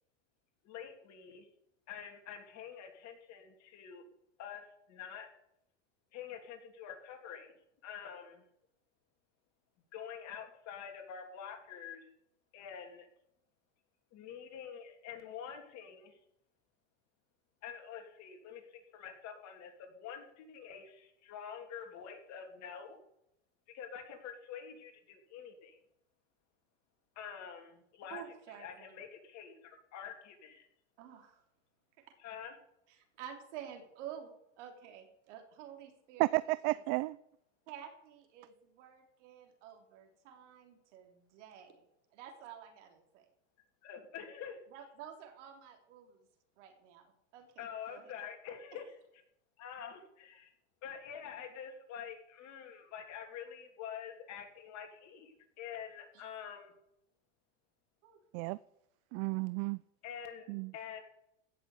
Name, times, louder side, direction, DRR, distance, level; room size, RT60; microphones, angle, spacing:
voice 1, 0.6-1.5 1.9-4.1 4.4-5.3 6.1-7.6 7.8-8.4 9.9-12.1 12.5-13.1 14.1-16.2 17.6-23.0 23.7-25.8 27.1-28.2 28.6-30.7 32.2-32.6 43.8-44.6 47.6-48.9 49.6-50.5 50.8-56.8 60.0-60.5 60.7-61.0, left 8 dB, 45° left, 3.1 m, -47 dB
voice 2, 28.1-29.0 31.0-31.4 32.0-32.1 32.9-36.4 36.7-36.8 37.7-41.8 42.1-43.3 44.7-46.2 46.6-48.1 56.1-56.5 58.0-58.2, right 9 dB, 70° right, 3.4 m, -51 dB
voice 3, 36.2-37.2 58.3-58.6 59.1-59.8 60.5-60.7, right 22 dB, 45° right, 0.5 m, -32 dB
16.0 x 6.8 x 8.4 m
supercardioid pair, 115°, 38 cm